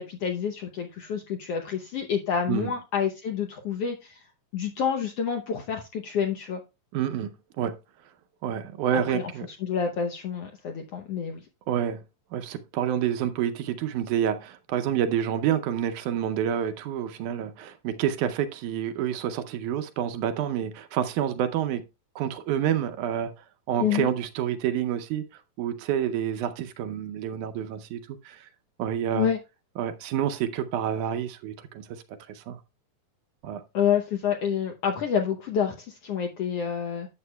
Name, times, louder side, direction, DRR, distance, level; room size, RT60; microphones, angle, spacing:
voice 1, 0.0-4.2 4.5-6.6 8.9-9.3 9.6-11.4 23.8-24.1 29.1-29.4 33.7-37.1, left 7 dB, 70° left, 1.5 m, -28 dB
voice 2, 6.9-7.3 7.6-7.7 8.4-9.5 11.7-12.0 12.3-21.8 22.2-23.3 23.7-25.2 25.6-28.5 28.8-29.3 29.8-32.0 32.3-32.6 33.4-33.6, right 9 dB, 75° right, 2.1 m, -28 dB
11.0 x 7.9 x 2.2 m
omnidirectional pair, 3.7 m